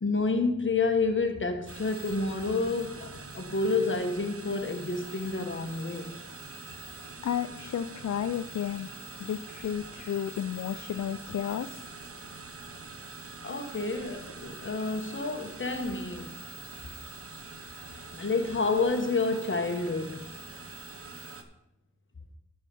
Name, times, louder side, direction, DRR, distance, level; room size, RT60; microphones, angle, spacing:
voice 1, 0.0-6.1 13.4-16.3 18.1-20.3, left 3 dB, 40° left, 1.2 m, -29 dB
sound 1, 1.7-21.4, right 3 dB, 45° right, 1.0 m, -44 dB
voice 2, 7.2-8.9 9.2-11.9, left 9 dB, 60° left, 0.4 m, -32 dB
11.5 x 5.5 x 5.4 m
wide cardioid pair, 65°, 31 cm